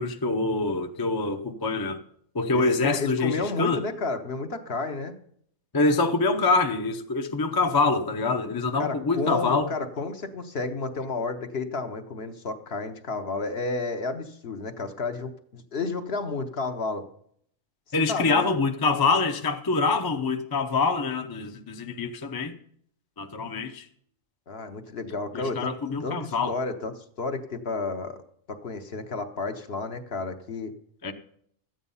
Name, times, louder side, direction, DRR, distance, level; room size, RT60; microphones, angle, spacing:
voice 1, 0.0-2.0 2.3-3.8 5.7-9.7 17.9-22.5 23.2-23.8 25.3-26.5 31.0-31.1, left 3 dB, 20° left, 5 dB, 0.6 m, -25 dB
voice 2, 2.5-5.1 8.8-17.1 18.1-18.5 24.5-25.7 26.0-28.2 28.5-30.7, left 3 dB, 50° left, 6 dB, 1.1 m, -31 dB
13.5 x 9.0 x 5.5 m, 0.66 s
omnidirectional pair, 1.4 m